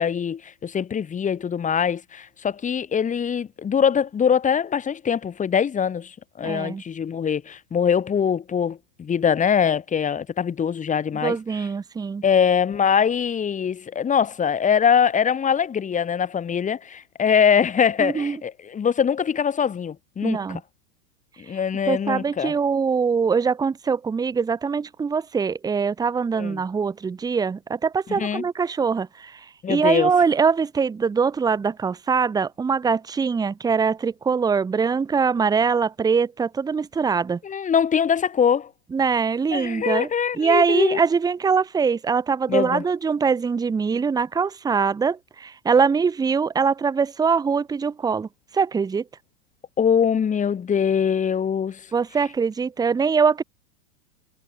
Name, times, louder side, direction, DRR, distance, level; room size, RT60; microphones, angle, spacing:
voice 1, 0.0-11.4 12.2-20.4 21.5-22.5 26.3-26.6 28.2-28.4 29.6-30.1 37.4-38.7 39.5-41.0 42.5-42.8 49.8-51.8, left 7 dB, 15° left, 5.6 m, -22 dB
voice 2, 6.4-6.8 11.2-12.2 18.0-18.4 20.2-20.6 21.9-29.4 29.7-37.4 38.9-40.1 40.3-48.3 48.5-49.0 51.9-53.4, right 5 dB, 10° right, 1.3 m, -22 dB
supercardioid pair, 150°, 48 cm